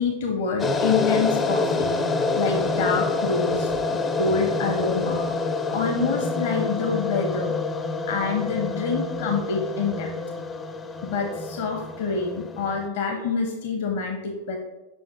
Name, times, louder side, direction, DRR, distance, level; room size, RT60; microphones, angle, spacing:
voice 1, 0.0-5.3 5.7-7.5 8.1-10.1 11.0-14.6, left 4 dB, 55° left, 3 dB, 0.7 m, -27 dB
sound 1, 0.6-12.9, left 3 dB, 20° left, 0.4 m, -27 dB
5.5 x 5.1 x 3.8 m, 1.0 s
figure-of-eight pair, 90°, 0 cm